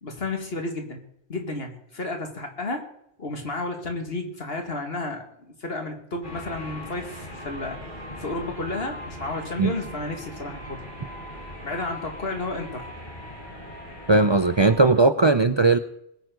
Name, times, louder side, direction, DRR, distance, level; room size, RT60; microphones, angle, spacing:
voice 1, 0.0-1.0 1.3-2.8 3.2-7.8 8.2-10.9 11.6-12.9, left 2 dB, 70° left, 4 dB, 2.4 m, -32 dB
sound 1, 6.2-14.9, left 1 dB, 50° left, 4.7 m, -39 dB
voice 2, 14.1-15.8, right 3 dB, 35° right, 11 dB, 0.5 m, -18 dB
21.0 x 9.3 x 3.9 m, 0.75 s
omnidirectional pair, 1.1 m